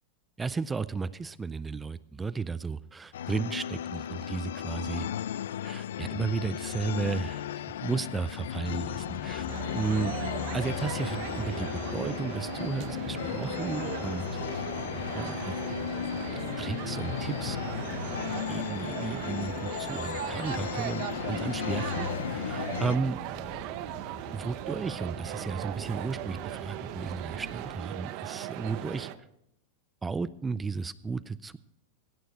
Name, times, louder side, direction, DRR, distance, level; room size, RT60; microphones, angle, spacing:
voice 1, 0.4-5.1 5.6-7.5 7.8-9.5 9.7-10.2 10.5-14.2 15.1-15.6 16.3-17.6 18.2-23.2 24.3-29.1 30.0-31.6, right 4 dB, 10° right, 17 dB, 0.4 m, -34 dB
sound 1, 3.1-23.0, left 10 dB, 85° left, 0.5 m, -35 dB
sound 2, 8.7-27.7, left 2 dB, 10° left, 4.7 m, -46 dB
sound 3, 9.5-29.2, right 14 dB, 50° right, 0.7 m, -38 dB
16.0 x 11.5 x 4.1 m, 0.76 s
supercardioid pair, 145°, 0 cm